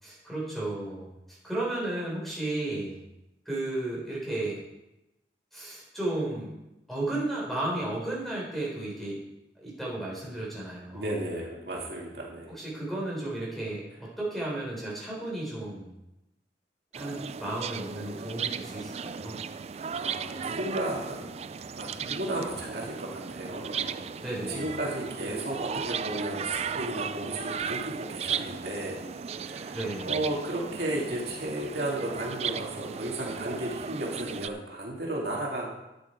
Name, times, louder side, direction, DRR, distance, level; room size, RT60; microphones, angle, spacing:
voice 1, 0.0-3.0 3.5-4.6 5.5-6.6 6.9-9.2 9.6-11.1 12.5-15.9 16.9-19.4 24.2-24.6 29.7-30.1, right 2 dB, ahead, -5 dB, 4.2 m, -33 dB
voice 2, 10.9-12.5 19.9-21.2 21.8-24.0 24.5-26.5 26.7-28.9 29.3-29.8 30.0-35.8, right 1 dB, 65° right, -2 dB, 2.3 m, -34 dB
sound 1, 16.9-34.5, right 6 dB, 35° right, 0.4 m, -36 dB
12.0 x 9.0 x 4.6 m, 0.94 s
head